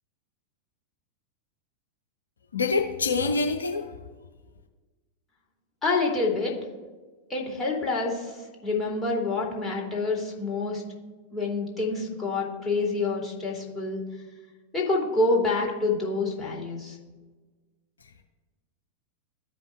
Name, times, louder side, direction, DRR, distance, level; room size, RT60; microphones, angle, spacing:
voice 1, 2.5-3.9, left 4 dB, 75° left, 3 dB, 0.5 m, -25 dB
voice 2, 5.8-6.5 7.3-8.4 8.6-10.8 11.3-14.0 14.7-17.0, left 3 dB, 15° left, -3 dB, 2.0 m, -27 dB
14.0 x 5.2 x 2.4 m, 1.3 s
figure-of-eight pair, 90°, 0 cm